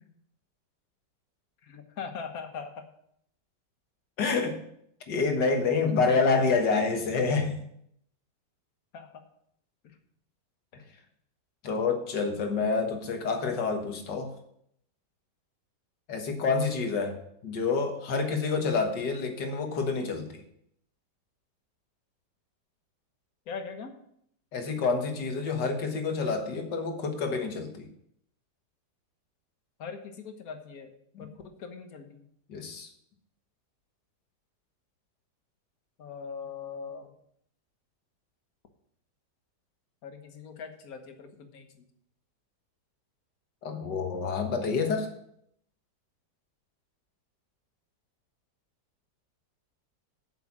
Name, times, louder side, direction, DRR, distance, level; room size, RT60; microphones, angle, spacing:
voice 1, 1.6-2.9 5.5-6.8 8.9-9.2 9.8-10.0 23.5-24.0 29.8-30.9 31.2-32.3 36.0-37.1 40.0-41.8, left 5 dB, 60° left, 6 dB, 1.7 m, -41 dB
voice 2, 4.2-4.6 5.1-7.6 11.6-14.3 16.1-20.3 24.5-27.9 32.5-32.9 43.6-45.1, left 4 dB, 80° left, 5 dB, 2.1 m, -28 dB
8.0 x 6.8 x 7.3 m, 0.72 s
omnidirectional pair, 1.8 m